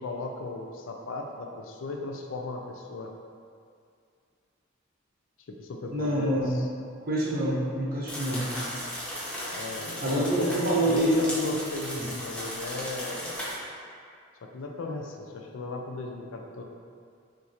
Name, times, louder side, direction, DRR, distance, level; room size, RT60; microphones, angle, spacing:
voice 1, 0.0-3.1 5.5-6.7 9.5-10.6 10.8-13.4 14.4-16.6, left 3 dB, 70° left, 2 dB, 0.4 m, -36 dB
voice 2, 5.9-6.6 7.0-8.9 10.0-11.2 11.4-11.5 11.9-12.1, right 1 dB, 50° right, -6 dB, 0.9 m, -27 dB
sound 1, 8.1-13.6, equal, 5° left, 0.7 m, -36 dB
5.7 x 2.6 x 2.8 m, 2.3 s
head